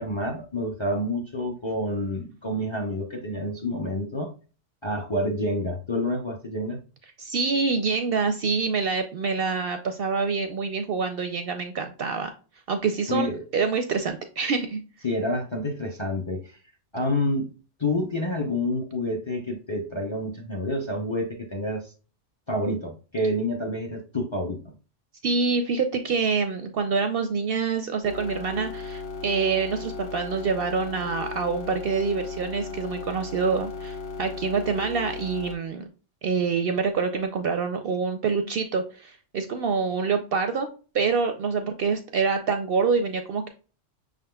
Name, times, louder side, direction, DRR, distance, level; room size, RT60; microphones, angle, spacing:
voice 1, 0.0-4.3 4.8-6.8 13.1-13.4 15.0-16.6 16.9-17.5 17.8-21.9 22.5-24.7, left 1 dB, 30° left, 2 dB, 0.6 m, -28 dB
voice 2, 7.2-12.3 12.7-14.8 25.2-35.9 36.2-40.7 40.9-43.5, right 5 dB, 60° right, 7 dB, 0.6 m, -26 dB
sound 1, 28.0-35.5, left 4 dB, 70° left, 1.3 m, -36 dB
5.9 x 3.7 x 2.2 m, 0.36 s
omnidirectional pair, 1.3 m